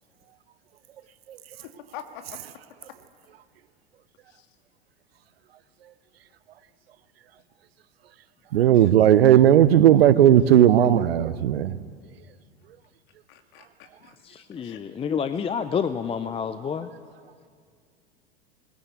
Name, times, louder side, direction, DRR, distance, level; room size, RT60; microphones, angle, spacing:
voice 1, 1.6-2.4 4.3-4.5 8.7-8.9 13.3-14.1 14.6-14.8, left 9 dB, 55° left, 5 dB, 2.5 m, -44 dB
voice 2, 8.5-11.8, right 11 dB, 70° right, 16 dB, 0.9 m, -16 dB
voice 3, 14.2-16.9, left 7 dB, 20° left, 12 dB, 0.7 m, -29 dB
21.0 x 20.0 x 8.3 m, 2.1 s
hypercardioid pair, 90°, 31 cm